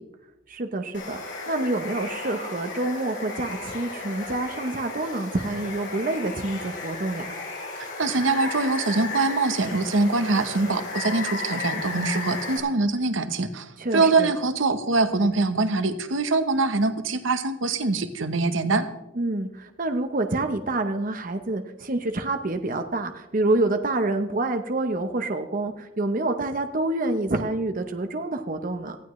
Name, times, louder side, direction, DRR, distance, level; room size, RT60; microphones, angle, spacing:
voice 1, 0.5-7.3 13.8-14.3 19.2-29.0, right 2 dB, 45° right, 7 dB, 0.8 m, -27 dB
Water, 0.9-12.6, left 3 dB, 65° left, 4.9 m, -34 dB
voice 2, 7.8-18.9, right 3 dB, 75° right, 10 dB, 1.0 m, -23 dB
18.5 x 14.5 x 3.2 m, 0.98 s
head